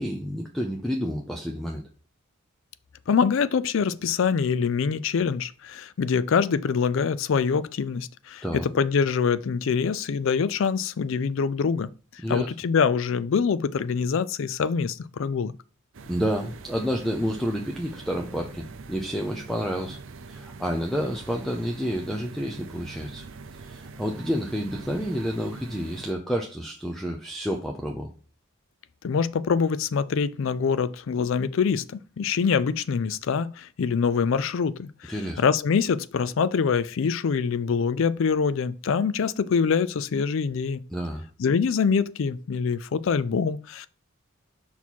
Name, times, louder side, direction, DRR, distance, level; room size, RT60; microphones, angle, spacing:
voice 1, 0.0-1.8 8.4-8.7 12.2-12.5 16.1-20.0 20.3-23.2 23.6-28.1 35.1-35.4 40.9-41.3, equal, ahead, 0.5 m, -29 dB
voice 2, 3.1-11.9 12.3-15.5 29.0-31.8 32.2-40.8 41.4-43.9, left 6 dB, 60° left, 0.4 m, -24 dB
sound 1, 15.9-26.1, right 4 dB, 60° right, 0.5 m, -43 dB
5.5 x 4.2 x 4.5 m
head